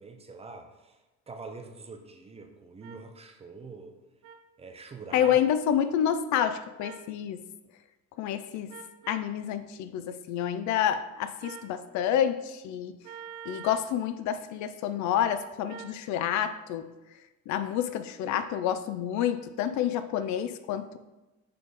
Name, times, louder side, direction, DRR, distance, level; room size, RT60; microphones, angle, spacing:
voice 1, 0.0-4.0 4.6-5.4, right 4 dB, 20° right, 5 dB, 0.5 m, -45 dB
sound 1, 2.8-3.0 4.2-4.4 5.2-5.4 6.8-7.1 8.7-9.3 11.4-11.7 13.0-13.9 15.7-16.0, right 7 dB, 85° right, 0.7 m, -44 dB
voice 2, 5.1-7.4 8.2-8.7 9.1-12.9 13.5-16.9 17.5-21.0, left 9 dB, 70° left, 11 dB, 0.5 m, -28 dB
6.5 x 3.6 x 4.0 m, 1.1 s
cardioid pair, 140°, 30 cm